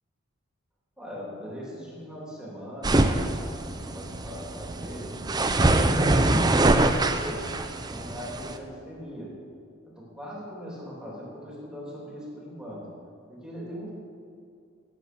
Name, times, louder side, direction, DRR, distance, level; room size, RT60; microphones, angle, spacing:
voice 1, 1.0-7.5 7.8-9.4 9.8-13.0 13.3-13.9, equal, 5° right, -6 dB, 3.1 m, -40 dB
sound 1, 2.8-8.6, right 2 dB, 20° right, 0.6 m, -24 dB
16.5 x 7.4 x 6.1 m, 2.4 s
head